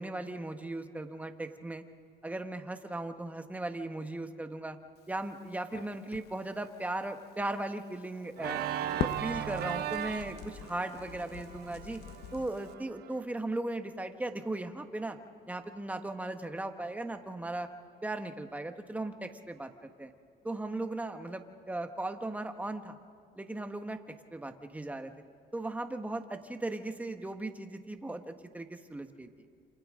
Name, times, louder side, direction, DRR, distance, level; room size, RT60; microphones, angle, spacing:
voice 1, 0.0-1.8 2.2-4.8 5.1-8.6 9.0-12.0 12.3-15.2 15.5-17.7 18.0-20.1 20.4-23.0 23.4-25.1 25.5-29.3, right 2 dB, 10° right, 6 dB, 1.4 m, -37 dB
Crackle, 5.0-12.7, left 9 dB, 75° left, 1.0 m, -44 dB
Organ, 8.4-13.2, right 11 dB, 70° right, 1.1 m, -38 dB
28.0 x 27.5 x 3.8 m, 2.4 s
cardioid pair, 110°, 17 cm